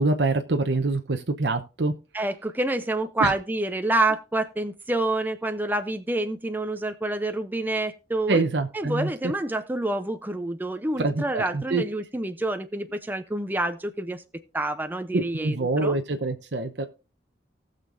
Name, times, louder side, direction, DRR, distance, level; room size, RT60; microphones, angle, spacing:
voice 1, 0.0-1.9 3.2-3.3 8.3-9.1 11.0-11.8 15.1-16.8, right 3 dB, 80° right, 5 dB, 0.9 m, -25 dB
voice 2, 2.1-8.4 8.7-14.2 14.5-15.6 15.8-16.0, right 2 dB, 10° right, 7 dB, 0.6 m, -27 dB
18.5 x 6.6 x 2.6 m, 0.32 s
head